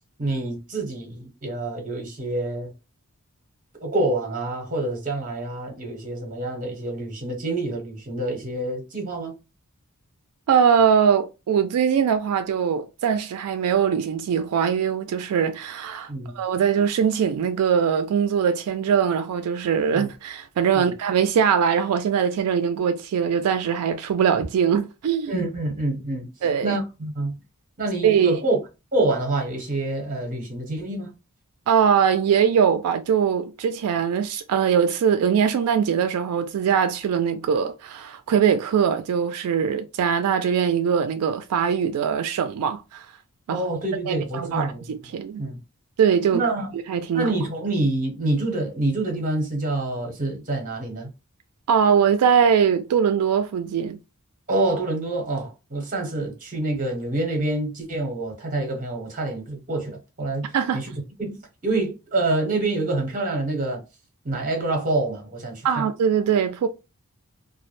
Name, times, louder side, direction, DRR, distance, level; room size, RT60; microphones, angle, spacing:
voice 1, 0.2-2.7 3.8-9.3 16.1-16.4 19.9-20.1 20.7-20.8 25.3-26.3 26.6-27.4 27.8-28.6 28.9-31.1 43.5-44.9 45.4-45.6 46.3-46.7 47.1-51.1 54.5-60.9 61.2-61.4 61.6-63.8 64.2-65.9, right 2 dB, 40° right, 0.9 m, -27 dB
voice 2, 10.5-25.3 26.4-26.8 28.0-28.4 31.7-43.1 43.5-43.6 44.1-45.4 46.0-46.5 46.9-47.3 51.7-54.0 60.5-60.8 65.6-66.7, right 7 dB, 85° right, 0.3 m, -21 dB
2.3 x 2.0 x 3.0 m
head